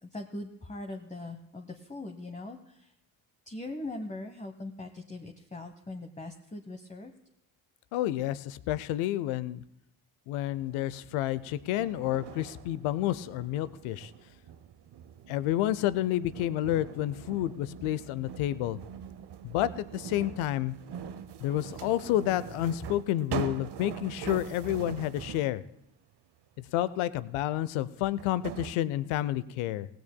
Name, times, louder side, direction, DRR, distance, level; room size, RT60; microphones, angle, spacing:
voice 1, 0.0-2.9 3.5-7.1, left 2 dB, 15° left, 5 dB, 1.1 m, -41 dB
voice 2, 7.9-9.6 10.3-14.1 15.3-18.8 19.4-20.7 21.4-25.6 26.7-29.9, left 13 dB, 75° left, 17 dB, 0.7 m, -30 dB
sound 1, 10.5-25.6 27.4-27.5 28.2-28.7, right 8 dB, 55° right, 0.8 m, -43 dB
18.0 x 15.5 x 2.2 m, 0.79 s
hypercardioid pair, 40°, 49 cm